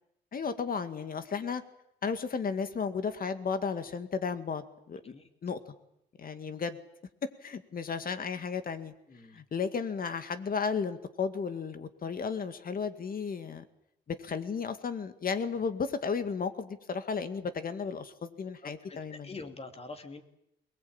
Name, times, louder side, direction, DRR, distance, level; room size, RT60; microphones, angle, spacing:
voice 1, 0.3-1.6 2.0-5.1 5.4-5.6 6.2-6.8 7.4-8.9 9.3-13.6 14.1-19.3, left 5 dB, 45° left, 10 dB, 2.1 m, -34 dB
voice 2, 9.1-9.4 18.6-20.2, left 3 dB, 30° left, 6 dB, 2.8 m, -45 dB
22.0 x 19.5 x 8.8 m, 0.80 s
cardioid pair, 90°, 20 cm